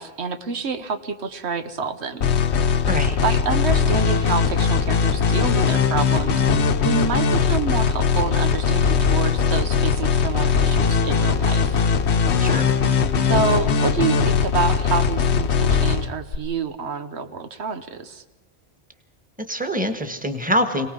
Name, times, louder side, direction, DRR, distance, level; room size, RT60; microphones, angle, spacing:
voice 1, 0.0-2.3 3.2-11.8 13.3-18.2, right 5 dB, 90° right, 8 dB, 1.3 m, -28 dB
sound 1, 2.2-16.4, left 5 dB, 85° left, 1.1 m, -20 dB
voice 2, 2.9-3.2 12.4-12.7 19.5-20.9, equal, 10° right, 6 dB, 1.5 m, -24 dB
26.5 x 18.5 x 5.3 m, 1.1 s
omnidirectional pair, 1.1 m